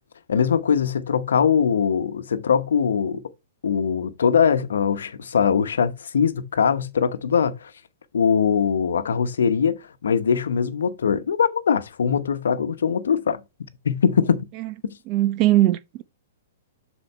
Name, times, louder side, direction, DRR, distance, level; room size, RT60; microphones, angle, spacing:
voice 1, 0.3-3.2 3.6-7.7 8.1-13.4 13.8-14.5, left 7 dB, 70° left, 1.0 m, -21 dB
voice 2, 15.1-16.0, right 15 dB, 35° right, 0.8 m, -20 dB
7.8 x 6.2 x 3.2 m
figure-of-eight pair, 110°, 0 cm